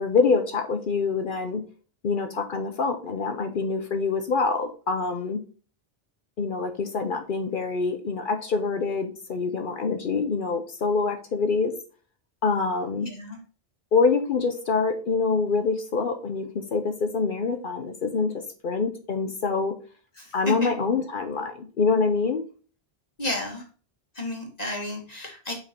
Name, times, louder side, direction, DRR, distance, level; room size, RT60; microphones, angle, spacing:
voice 1, 0.0-1.6 2.0-5.4 6.4-11.7 12.4-13.1 13.9-19.7 20.3-22.4, left 4 dB, 60° left, 7 dB, 0.9 m, -25 dB
voice 2, 13.0-13.4 20.2-20.7 23.2-23.6 24.2-25.5, left 2 dB, 40° left, 0 dB, 1.9 m, -32 dB
5.2 x 4.9 x 4.4 m, 0.39 s
omnidirectional pair, 1.0 m